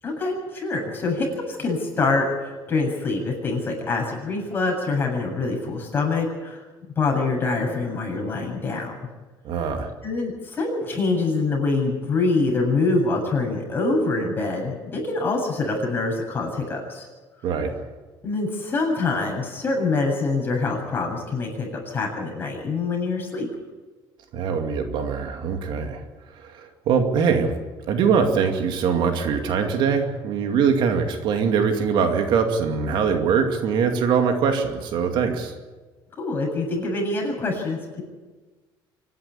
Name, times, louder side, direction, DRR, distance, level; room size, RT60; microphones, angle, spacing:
voice 1, 0.0-6.6 7.0-9.0 10.0-17.1 18.2-23.5 36.2-38.0, left 3 dB, 25° left, -1 dB, 7.5 m, -25 dB
voice 2, 9.4-9.9 17.4-17.7 24.3-26.0 26.4-27.5 27.9-35.5, right 6 dB, 60° right, 5 dB, 2.4 m, -22 dB
25.0 x 11.0 x 9.8 m, 1.3 s
cardioid pair, 140°, 9 cm